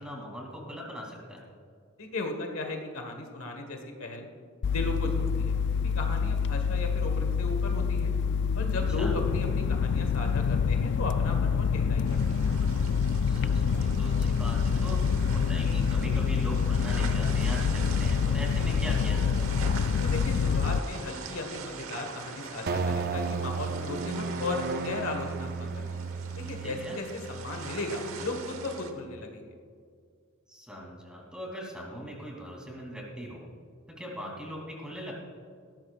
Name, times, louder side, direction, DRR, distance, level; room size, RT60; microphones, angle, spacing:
voice 1, 0.0-1.4 8.9-9.1 13.3-19.7 26.6-27.0 30.5-33.5 34.0-35.1, equal, 5° right, -2 dB, 2.9 m, -40 dB
voice 2, 2.0-4.2 4.6-5.5 5.8-8.1 8.5-12.5 20.0-25.9 26.4-29.5, left 2 dB, 70° left, 3 dB, 1.5 m, -36 dB
sound 1, 4.6-20.8, left 6 dB, 55° left, 0.3 m, -26 dB
sound 2, 12.0-28.9, right 4 dB, 70° right, 1.2 m, -42 dB
sound 3, 22.7-29.1, right 4 dB, 50° right, 0.5 m, -35 dB
18.5 x 13.5 x 2.4 m, 2.2 s
head